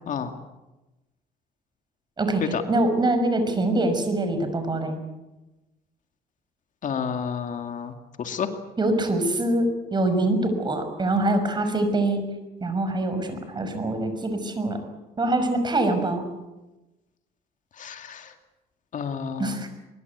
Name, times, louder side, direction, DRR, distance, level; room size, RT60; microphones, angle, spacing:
voice 1, 2.2-5.0 8.8-12.2 12.6-14.8 15.2-16.2 19.4-19.7, right 2 dB, 25° right, 8 dB, 5.7 m, -24 dB
voice 2, 6.8-8.5 17.8-18.3 18.9-19.5, left 7 dB, 50° left, 6 dB, 2.3 m, -30 dB
23.0 x 22.5 x 8.2 m, 1.0 s
cardioid pair, 110°, 17 cm